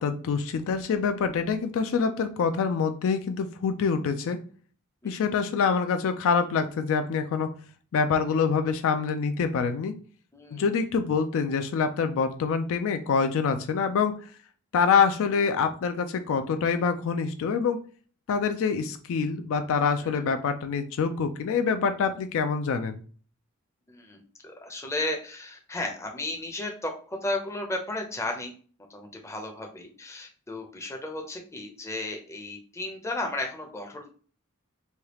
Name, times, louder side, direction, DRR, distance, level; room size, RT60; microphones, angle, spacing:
voice 1, 0.0-4.4 5.0-7.5 7.9-10.0 10.5-14.1 14.7-17.8 18.3-23.0, left 5 dB, 65° left, 8 dB, 0.3 m, -25 dB
voice 2, 10.3-10.7 20.0-20.2 23.9-24.2 24.4-28.5 28.9-34.1, left 2 dB, 15° left, 2 dB, 0.5 m, -34 dB
3.2 x 2.3 x 2.9 m, 0.42 s
head